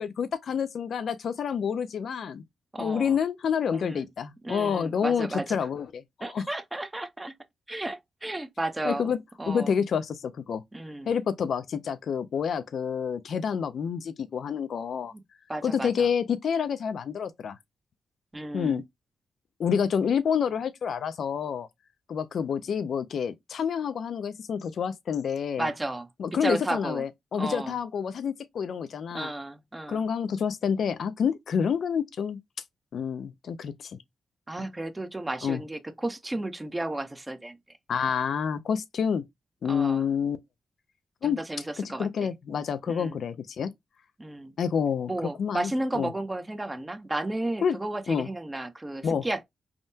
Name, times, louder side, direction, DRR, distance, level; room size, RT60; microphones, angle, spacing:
voice 1, 0.0-2.4 2.8-6.5 8.8-9.2 9.5-10.6 11.1-15.1 15.6-17.6 18.5-18.8 19.6-21.7 22.1-25.7 26.2-29.3 29.9-32.4 32.9-34.0 35.4-35.6 37.9-39.2 39.6-40.4 41.2-41.4 41.8-43.7 44.6-45.1 45.4-46.1 47.6-47.8 48.1-48.3 49.0-49.3, left 7 dB, 70° left, 0.3 m, -28 dB
voice 2, 2.7-3.2 3.7-4.1 4.4-5.6 6.2-7.3 7.7-9.1 9.4-9.7 10.7-11.1 15.1-15.2 15.5-16.1 18.3-18.8 25.6-26.1 26.4-27.0 27.4-27.8 29.1-30.0 34.5-37.6 38.0-38.1 39.7-40.1 41.2-42.3 42.9-43.2 44.2-44.5 45.1-49.4, right 2 dB, 15° right, 0.5 m, -33 dB
3.5 x 2.1 x 2.6 m
cardioid pair, 80°, 0 cm